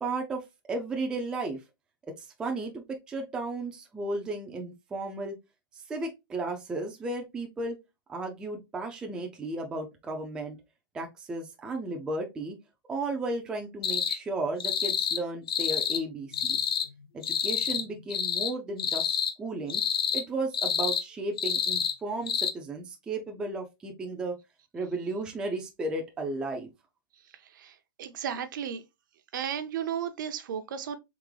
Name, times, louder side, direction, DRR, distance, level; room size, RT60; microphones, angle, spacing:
voice 1, 0.0-1.6 2.1-5.4 5.9-7.8 8.1-10.6 10.9-12.6 12.9-16.6 17.1-19.8 20.1-24.4 24.7-26.7, right 2 dB, 5° right, 0.4 m, -34 dB
sound 1, 13.8-14.2 14.6-15.2 15.5-16.0 16.3-16.9 17.2-17.8 18.1-18.5 18.8-19.3 19.7-20.2 20.5-21.0 21.4-21.9 22.3-22.5, left 8 dB, 80° left, 0.7 m, -28 dB
voice 2, 27.3-28.8 29.3-31.0, right 8 dB, 60° right, 0.6 m, -34 dB
3.6 x 2.9 x 3.1 m
hypercardioid pair, 165°, 12 cm